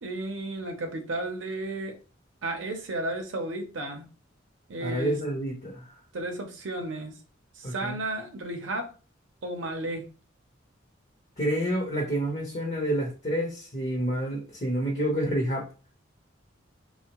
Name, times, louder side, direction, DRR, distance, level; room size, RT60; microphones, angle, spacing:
voice 1, 0.0-2.0 2.4-4.1 4.7-5.2 6.1-7.1 7.6-8.9 9.4-10.1, right 2 dB, 75° right, 0.6 m, -33 dB
voice 2, 4.8-5.9 7.6-8.0 11.4-15.7, right 1 dB, 40° left, 0.7 m, -28 dB
3.4 x 2.1 x 2.9 m
head